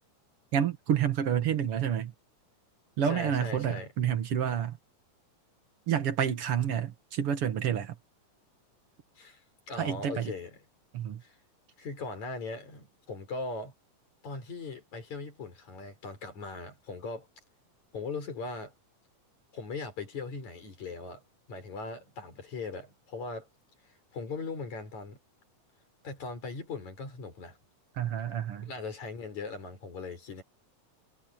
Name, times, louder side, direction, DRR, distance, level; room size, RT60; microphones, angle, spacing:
voice 1, 0.5-2.1 3.0-4.8 5.9-8.0 9.8-10.3 10.9-11.2 28.0-28.7, right 9 dB, 55° right, 2.3 m, -29 dB
voice 2, 3.0-3.9 9.2-9.4 9.7-10.5 11.2-11.3 11.8-13.7 14.2-17.3 17.9-18.7 19.5-21.2 21.5-23.5 24.1-25.2 26.0-27.6 28.6-30.4, left 3 dB, 65° left, 6.5 m, -39 dB
omnidirectional pair, 3.5 m